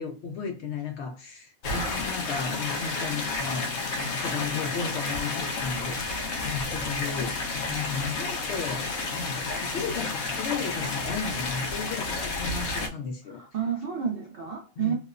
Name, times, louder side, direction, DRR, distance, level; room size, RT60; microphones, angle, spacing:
voice 1, 0.0-3.7 4.1-13.4 14.8-14.9, left 5 dB, 65° left, 4 dB, 0.7 m, -34 dB
sound 1, 1.6-12.9, left 3 dB, 85° left, 1.0 m, -31 dB
voice 2, 1.7-2.0 13.3-14.9, right 7 dB, 65° right, 0 dB, 0.5 m, -31 dB
2.9 x 2.0 x 2.3 m, 0.34 s
omnidirectional pair, 1.4 m